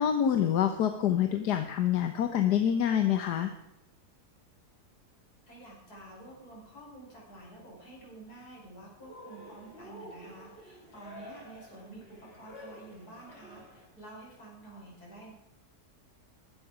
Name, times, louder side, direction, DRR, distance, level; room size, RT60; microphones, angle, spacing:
voice 1, 0.0-3.5, left 9 dB, 90° left, 7 dB, 1.5 m, -26 dB
voice 2, 5.5-15.3, right 2 dB, 70° left, -3 dB, 6.2 m, -50 dB
Cheering, 9.0-14.0, equal, 35° left, 3.8 m, -49 dB
15.5 x 12.0 x 5.0 m, 0.86 s
omnidirectional pair, 1.7 m